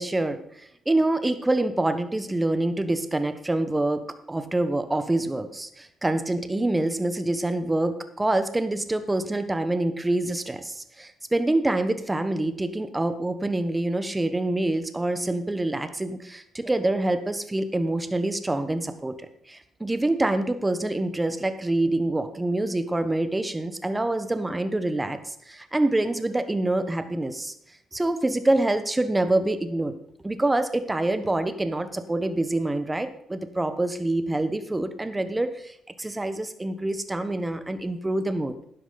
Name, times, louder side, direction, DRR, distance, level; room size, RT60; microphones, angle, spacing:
voice 1, 0.0-19.1 19.5-27.5 27.9-29.9 30.2-38.5, right 2 dB, 15° right, 10 dB, 1.2 m, -26 dB
12.0 x 10.0 x 4.1 m, 0.71 s
cardioid pair, 90°, 0 cm